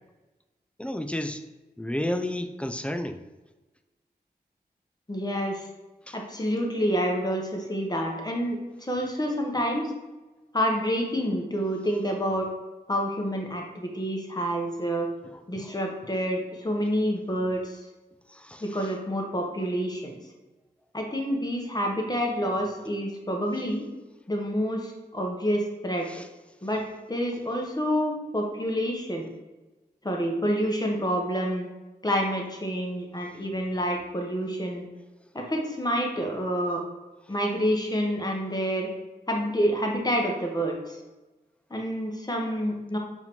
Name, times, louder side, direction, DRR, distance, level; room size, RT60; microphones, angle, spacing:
voice 1, 0.8-1.4 1.8-3.2 6.1-6.2 15.3-15.7 18.3-18.6 26.1-26.3, left 1 dB, 5° left, 8 dB, 0.3 m, -32 dB
voice 2, 5.1-5.7 6.1-9.9 10.5-12.5 12.9-15.1 15.5-17.8 18.6-20.2 20.9-23.8 24.3-26.1 26.6-29.3 30.0-31.7 32.0-34.8 35.3-36.8 37.3-38.9 39.3-41.0 41.7-43.0, equal, 25° left, 0 dB, 1.0 m, -28 dB
4.7 x 2.8 x 3.6 m, 1.1 s
cardioid pair, 50°, 17 cm